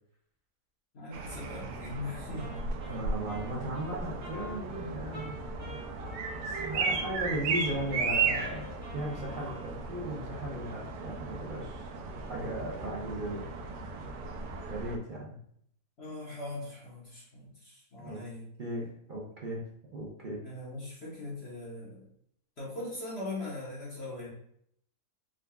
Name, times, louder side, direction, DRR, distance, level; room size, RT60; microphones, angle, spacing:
voice 1, 0.9-2.6 16.0-18.5 20.4-22.0 22.6-24.3, left 2 dB, 45° left, -6 dB, 1.1 m, -40 dB
sound 1, 1.1-15.0, right 4 dB, 85° right, 1.2 m, -35 dB
Wind instrument woodwind instrument, 2.4-7.1 7.5-10.1, right 2 dB, 30° right, 1.3 m, -47 dB
voice 2, 2.9-5.3 6.1-8.7 8.9-11.9 12.3-13.4 14.7-15.3 18.0-18.2 18.6-19.6 19.9-20.4, right 1 dB, 55° right, -4 dB, 0.5 m, -37 dB
3.8 x 3.4 x 2.3 m, 0.68 s
omnidirectional pair, 1.7 m